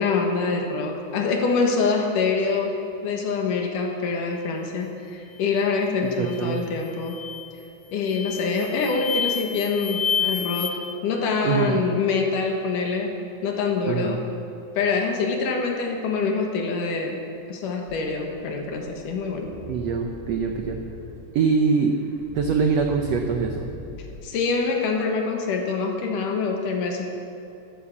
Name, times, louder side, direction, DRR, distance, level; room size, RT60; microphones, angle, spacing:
voice 1, 0.0-2.8 3.0-7.2 7.9-13.1 13.4-14.2 14.8-17.2 17.5-19.5 24.2-27.1, left 4 dB, 65° left, 2 dB, 2.8 m, -25 dB
voice 2, 6.2-6.6 11.4-11.8 13.8-14.2 19.7-20.8 21.3-21.9 22.3-23.7, right 5 dB, 90° right, 4 dB, 1.4 m, -23 dB
sound 1, 6.3-6.6 7.0-7.5 8.0-10.7, left 7 dB, 40° left, 0.7 m, -29 dB
sound 2, 17.9-24.1, equal, 20° right, 0.9 m, -40 dB
13.0 x 12.5 x 7.2 m, 2.7 s
omnidirectional pair, 4.2 m